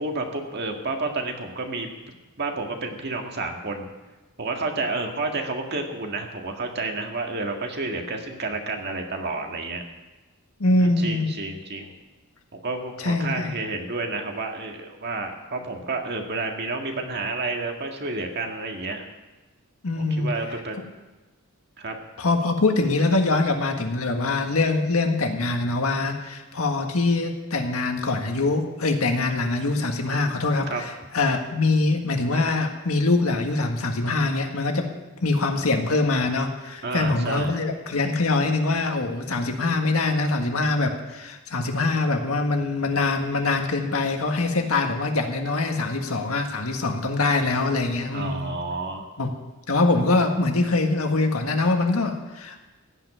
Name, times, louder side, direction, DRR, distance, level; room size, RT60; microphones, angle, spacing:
voice 1, 0.0-1.9 2.4-3.9 4.4-9.8 10.8-11.9 12.5-19.0 20.0-20.8 21.8-22.0 30.7-30.8 36.8-37.6 48.1-49.1, right 3 dB, 50° right, 3 dB, 1.8 m, -30 dB
voice 2, 10.6-11.3 13.0-13.5 19.8-20.3 22.2-34.9 35.2-48.5 49.2-49.4 49.7-52.6, left 3 dB, 85° left, 4 dB, 1.7 m, -23 dB
16.5 x 5.8 x 9.9 m, 1.1 s
head